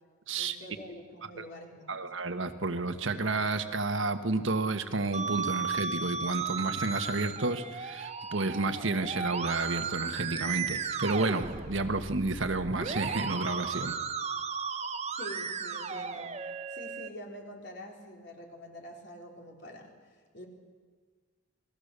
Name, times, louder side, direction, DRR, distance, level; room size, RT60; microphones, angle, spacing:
voice 1, 0.4-2.1 15.1-16.3 16.7-19.9 20.3-20.4, equal, 55° left, 1 dB, 3.8 m, -46 dB
voice 2, 1.9-13.9, right 3 dB, 70° right, 8 dB, 1.5 m, -31 dB
Musical instrument, 5.1-17.1, right 5 dB, 30° right, 1.1 m, -35 dB
29.0 x 20.5 x 6.8 m, 1.5 s
head